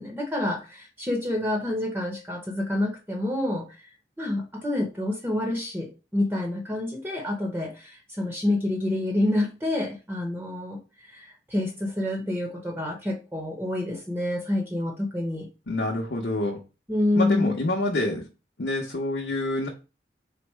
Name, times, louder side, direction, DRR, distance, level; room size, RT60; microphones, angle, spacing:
voice 1, 0.0-3.6 4.2-10.8 11.0-15.5 16.9-17.6, left 1 dB, 10° right, 0 dB, 0.8 m, -28 dB
voice 2, 15.7-16.6 17.1-18.2 18.6-19.7, left 2 dB, 80° left, -1 dB, 0.8 m, -27 dB
4.2 x 2.1 x 4.5 m, 0.30 s
head